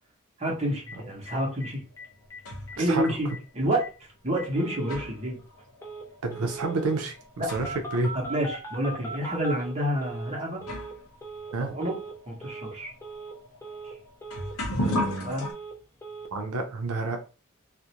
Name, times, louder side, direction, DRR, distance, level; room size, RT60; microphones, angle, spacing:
voice 1, 0.4-1.8 2.8-3.3 3.5-3.8 4.2-5.4 7.4-7.5 8.1-10.6 11.6-12.0 12.3-12.9 15.2-15.4, right 1 dB, 30° right, -2 dB, 0.8 m, -28 dB
Telephone, 0.9-1.0 1.3-1.4 1.6-1.7 2.0-2.4 2.7-2.8 3.0-3.4 3.8-3.9 4.4-5.0 5.8-6.0 6.3-7.0 7.6-10.3 10.6-10.9 11.2-11.5 11.8-12.1 12.4-12.7 13.0-13.3 13.6-13.9 14.2-15.1 15.4-16.3, right 2 dB, 10° left, 0.3 m, -39 dB
sound 1, 1.8-2.9 3.8-3.9 4.5-8.0 8.3-8.4 9.2-9.3 10.1-10.2 10.6-15.5, left 1 dB, 80° left, 0.8 m, -36 dB
voice 2, 2.8-3.2 6.2-8.1 11.5-11.8 14.8-15.3 16.3-17.2, right 3 dB, 80° right, 4 dB, 0.5 m, -29 dB
2.4 x 2.0 x 2.8 m, 0.34 s
head